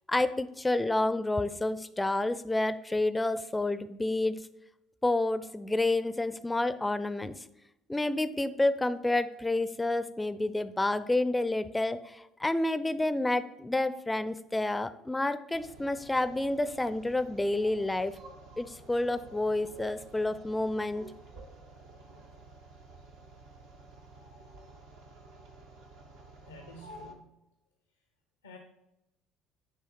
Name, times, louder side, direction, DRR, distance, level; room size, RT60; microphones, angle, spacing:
voice 1, 0.1-4.4 5.0-7.3 7.9-18.2 18.6-21.1, left 2 dB, 10° left, 13 dB, 0.5 m, -29 dB
sound 1, 15.5-27.1, right 2 dB, 70° right, 1.0 m, -51 dB
voice 2, 26.5-27.4 28.4-28.6, left 1 dB, 85° left, 4 dB, 0.6 m, -50 dB
9.5 x 3.3 x 4.6 m, 0.89 s
figure-of-eight pair, 55°, 0 cm